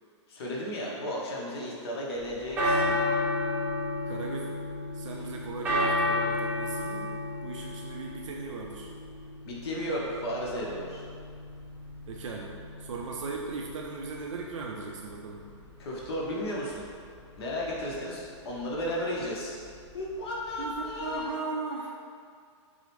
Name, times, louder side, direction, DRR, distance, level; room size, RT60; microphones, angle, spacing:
voice 1, 0.3-3.0 9.4-11.0 15.8-16.9 17.4-19.6 19.9-21.3, equal, 55° left, -4 dB, 0.8 m, -34 dB
sound 1, 2.2-21.3, left 1 dB, 10° right, 0.7 m, -33 dB
voice 2, 4.0-4.6 4.9-7.1 7.4-8.9 12.1-12.5 12.8-15.4 20.6-21.9, right 4 dB, 80° right, -1 dB, 0.5 m, -37 dB
6.2 x 2.1 x 3.0 m, 2.2 s
hypercardioid pair, 155°, 16 cm